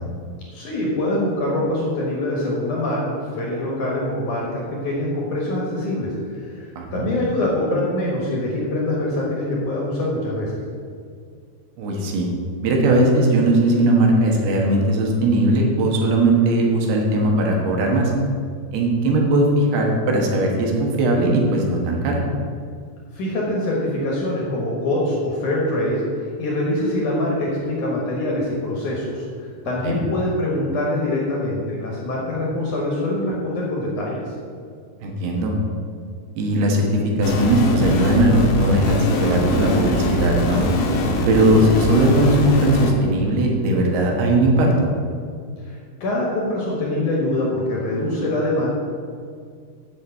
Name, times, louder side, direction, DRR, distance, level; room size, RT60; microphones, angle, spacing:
voice 1, 0.5-10.5 23.1-34.3 45.7-48.7, left 1 dB, 60° left, -3 dB, 2.5 m, -24 dB
voice 2, 11.8-12.3 12.6-18.1 18.7-22.2 29.8-30.0 35.0-35.5 36.4-40.6 41.3-44.9, right 1 dB, 70° right, 0 dB, 3.2 m, -19 dB
sound 1, 37.2-42.9, left 1 dB, 75° left, 3.2 m, -22 dB
8.8 x 5.7 x 7.8 m, 2.2 s
omnidirectional pair, 4.9 m